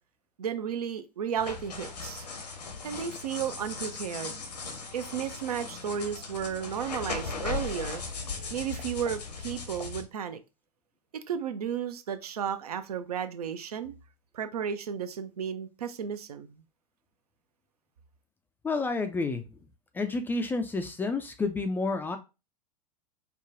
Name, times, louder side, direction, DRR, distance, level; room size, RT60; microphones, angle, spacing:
voice 1, 0.4-2.3 2.8-4.4 4.9-8.0 8.5-10.4 11.1-13.9 14.3-16.6, right 8 dB, 65° right, 0.5 m, -33 dB
sound 1, 1.4-10.0, left 4 dB, 75° left, 0.9 m, -38 dB
voice 2, 18.6-19.4 19.9-22.2, left 3 dB, 10° left, 0.3 m, -30 dB
4.8 x 2.2 x 2.5 m
figure-of-eight pair, 85°, 21 cm